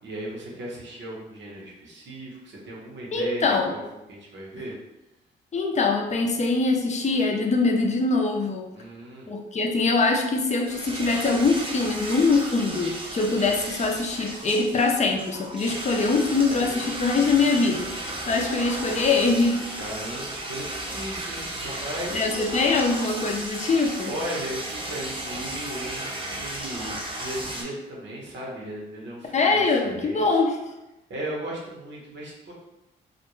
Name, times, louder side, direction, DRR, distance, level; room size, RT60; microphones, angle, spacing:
voice 1, 0.0-3.8 4.1-4.8 8.7-9.3 19.7-22.3 24.1-30.4 31.1-32.5, right 1 dB, 65° right, -3 dB, 0.9 m, -36 dB
voice 2, 3.1-3.7 5.5-8.7 9.3-19.6 22.1-24.1 29.3-30.6, left 3 dB, 35° left, 2 dB, 0.5 m, -23 dB
sound 1, 10.6-27.6, right 1 dB, 25° right, 0.7 m, -34 dB
2.4 x 2.2 x 3.0 m, 0.97 s
supercardioid pair, 60°, 21 cm